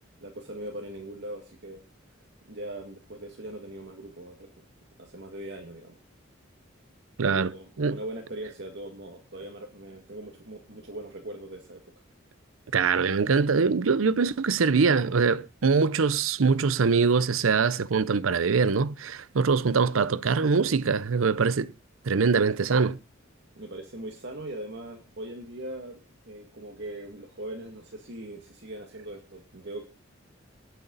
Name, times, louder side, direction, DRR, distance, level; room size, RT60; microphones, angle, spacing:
voice 1, 0.2-1.8 2.5-4.5 5.0-6.0 7.2-11.9 23.6-26.0 26.2-29.8, right 1 dB, 60° right, 2.1 m, -40 dB
voice 2, 7.2-7.5 7.8-8.0 12.7-21.7 22.1-23.0, right 5 dB, 80° right, 0.6 m, -23 dB
19.0 x 7.8 x 4.0 m
head